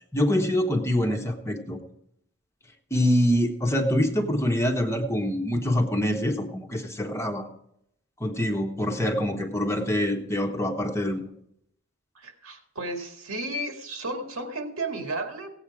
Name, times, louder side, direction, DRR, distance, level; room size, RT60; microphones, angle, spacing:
voice 1, 0.1-1.8 2.9-7.5 8.2-11.3, left 1 dB, 15° left, 3 dB, 1.2 m, -25 dB
voice 2, 12.2-15.5, right 2 dB, 80° right, 4 dB, 2.0 m, -33 dB
17.0 x 8.1 x 4.9 m, 0.73 s
head